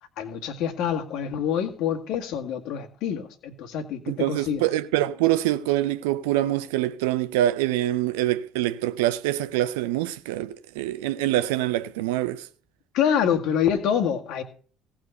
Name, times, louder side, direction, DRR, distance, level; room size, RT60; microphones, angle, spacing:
voice 1, 0.2-4.6 12.9-14.4, left 8 dB, 55° left, 1.9 m, -26 dB
voice 2, 4.1-12.5, right 14 dB, 65° right, 0.6 m, -25 dB
17.0 x 6.3 x 6.8 m
figure-of-eight pair, 55°, 0 cm